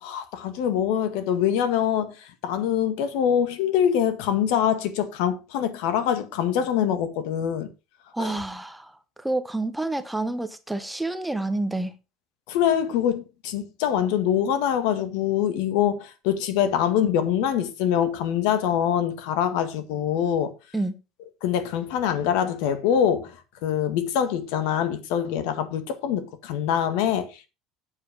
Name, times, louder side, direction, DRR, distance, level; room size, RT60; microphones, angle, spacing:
voice 1, 0.0-7.7 8.2-8.3 12.5-20.5 21.4-23.4 23.6-27.5, left 9 dB, 80° left, 1.7 m, -24 dB
voice 2, 8.1-11.9 20.7-20.9, right 2 dB, 5° right, 0.8 m, -28 dB
8.2 x 7.5 x 5.1 m
cardioid pair, 150°, 0 cm